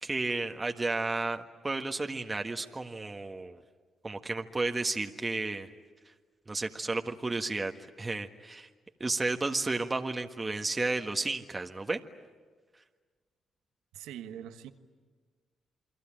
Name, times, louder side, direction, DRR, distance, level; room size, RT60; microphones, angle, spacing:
voice 1, 0.0-3.6 4.0-5.7 6.5-7.7 8.0-8.7 9.0-12.0, right 3 dB, 25° right, 4 dB, 1.5 m, -32 dB
voice 2, 13.9-14.7, right 10 dB, 90° right, 9 dB, 1.3 m, -43 dB
29.0 x 22.5 x 8.9 m, 1.5 s
supercardioid pair, 65°, 0 cm